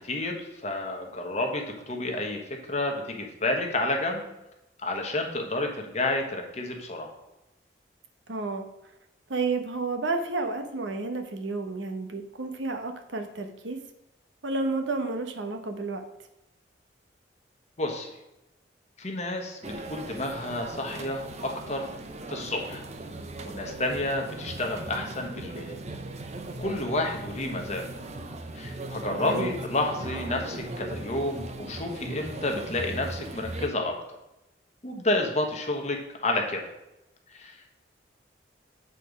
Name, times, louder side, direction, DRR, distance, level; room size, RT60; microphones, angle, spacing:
voice 1, 0.0-2.4 2.7-4.3 4.8-7.1 17.8-18.1 19.0-21.9 22.3-22.8 23.4-25.8 26.6-27.8 28.6-33.9 34.8-36.6 37.3-37.6, left 2 dB, 35° left, 2 dB, 1.1 m, -30 dB
voice 2, 8.3-8.7 9.3-13.8 14.4-16.0 29.1-29.5, right 3 dB, 80° right, 6 dB, 0.9 m, -31 dB
sound 1, 19.6-33.7, right 2 dB, 35° right, 0.6 m, -38 dB
8.1 x 4.2 x 5.1 m, 0.91 s
head